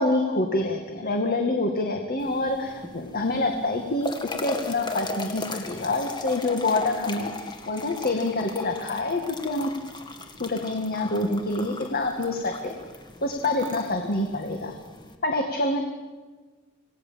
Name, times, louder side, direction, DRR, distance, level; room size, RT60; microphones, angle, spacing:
voice 1, 0.0-9.7 10.4-12.7 13.2-14.7 15.2-15.8, left 2 dB, 45° left, 3 dB, 2.0 m, -26 dB
sound 1, 2.2-15.2, left 3 dB, 20° left, 2.0 m, -38 dB
26.5 x 18.0 x 7.6 m, 1.4 s
head